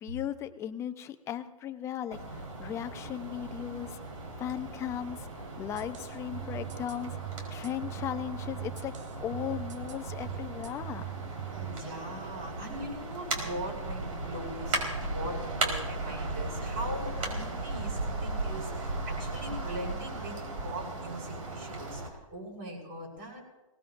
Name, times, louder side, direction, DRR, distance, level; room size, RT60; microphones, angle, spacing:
voice 1, 0.0-4.0 4.4-5.3 5.6-7.2 7.5-8.9 9.2-11.0, left 10 dB, 15° left, 9 dB, 0.6 m, -37 dB
sound 1, 2.1-22.1, right 2 dB, 85° right, 4.4 m, -37 dB
sound 2, 5.7-11.8, right 18 dB, 65° right, 0.9 m, -41 dB
voice 2, 11.5-22.0 22.3-23.4, right 1 dB, 45° right, -3 dB, 6.5 m, -40 dB
24.0 x 18.5 x 2.6 m, 1.1 s
hypercardioid pair, 150°, 17 cm